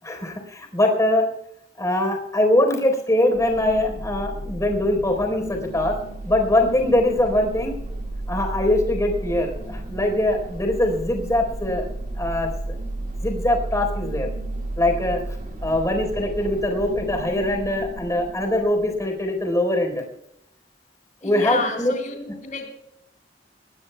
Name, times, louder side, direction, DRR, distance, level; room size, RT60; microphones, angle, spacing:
voice 1, 0.0-1.3 1.8-5.9 6.2-7.7 8.3-11.9 12.1-12.5 13.2-14.3 14.8-15.2 15.6-20.0 21.2-21.9, left 1 dB, 20° left, 3 dB, 4.1 m, -22 dB
sound 1, 3.3-19.3, right 1 dB, 50° right, 2.4 m, -33 dB
voice 2, 21.2-22.8, left 4 dB, 45° left, 5 dB, 3.8 m, -30 dB
21.5 x 19.5 x 2.3 m, 0.79 s
head